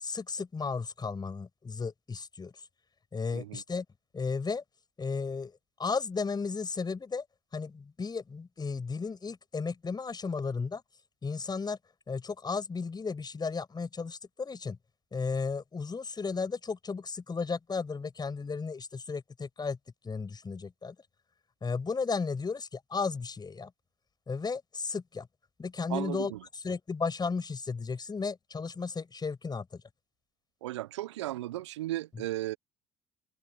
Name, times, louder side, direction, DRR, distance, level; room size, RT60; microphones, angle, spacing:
voice 1, 0.0-2.5 3.1-3.8 4.1-4.6 5.0-5.5 5.8-7.2 7.5-10.8 11.2-11.8 12.1-14.8 15.1-19.8 20.0-20.9 21.6-23.7 24.3-25.3 25.6-29.8, left 4 dB, 30° left, 6.0 m, -34 dB
voice 2, 25.9-26.4 30.6-32.6, right 15 dB, 80° right, 1.1 m, -35 dB
figure-of-eight pair, 55°, 15 cm